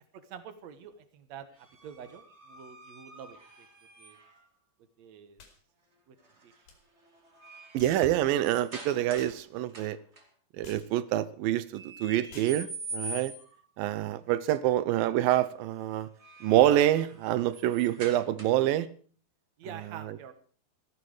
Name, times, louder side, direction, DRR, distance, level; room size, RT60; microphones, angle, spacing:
voice 1, 0.1-3.7 4.0-4.2 5.0-5.4 6.1-6.2 6.4-6.5 19.6-20.3, right 7 dB, 60° right, 2.3 m, -47 dB
sound 1, 1.6-4.5 6.2-6.6 7.0-9.4 9.7-10.2 11.7-13.6 15.9-18.8, right 1 dB, 25° right, 1.9 m, -45 dB
sound 2, 5.4-5.6 6.7-6.8 7.8-8.1 9.2-9.4 10.6-10.9 12.3-12.6, left 5 dB, 85° left, 4.5 m, -50 dB
voice 2, 7.7-10.0 10.6-13.3 13.8-16.1 16.4-18.9 20.0-20.2, right 13 dB, 80° right, 2.5 m, -26 dB
16.0 x 13.5 x 4.9 m
omnidirectional pair, 4.1 m